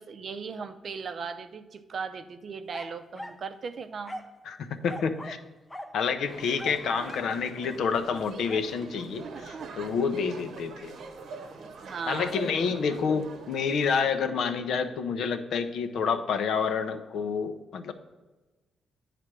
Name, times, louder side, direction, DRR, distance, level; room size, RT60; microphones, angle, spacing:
voice 1, 0.0-4.2 6.9-7.1 9.2-9.9 11.8-12.8, right 5 dB, 45° right, 9 dB, 0.5 m, -38 dB
sound 1, 2.7-3.5 4.1-4.4 4.9-5.5 5.7-6.0 6.6-7.4 8.5-8.7, left 1 dB, 10° left, 0.5 m, -41 dB
voice 2, 4.5-5.4 5.9-10.9 12.1-17.9, left 6 dB, 70° left, 8 dB, 0.6 m, -28 dB
sound 2, 6.2-14.1, right 4 dB, 65° right, 0.8 m, -44 dB
9.5 x 3.3 x 6.0 m, 1.2 s
cardioid pair, 135°, 0 cm